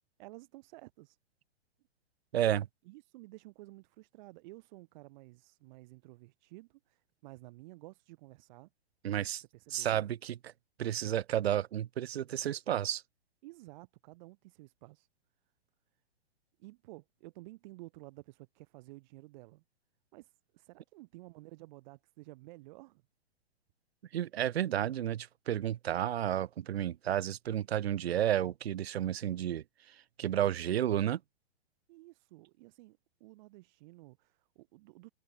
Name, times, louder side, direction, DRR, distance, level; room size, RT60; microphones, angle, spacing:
voice 1, 0.2-1.2 2.8-8.7 9.4-10.0 13.4-15.1 16.6-19.6 20.1-23.0 31.9-35.1, right 21 dB, 45° right, 6.8 m, -53 dB
voice 2, 2.3-2.7 9.0-9.4 9.7-10.5 10.8-13.0 24.1-31.2, right 11 dB, 75° right, 0.5 m, -32 dB
hypercardioid pair, 115°, 32 cm